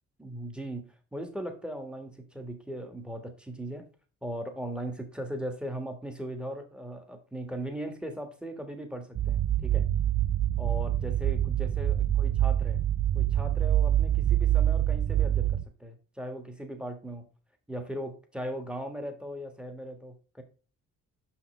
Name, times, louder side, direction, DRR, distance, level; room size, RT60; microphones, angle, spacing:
voice 1, 0.2-3.9 4.2-9.9 10.6-12.8 13.1-17.3 17.7-20.4, right 1 dB, 5° right, 6 dB, 1.5 m, -38 dB
sound 1, 9.2-15.7, right 11 dB, 35° right, 0.5 m, -25 dB
5.8 x 5.5 x 3.1 m, 0.36 s
cardioid pair, 90°, 30 cm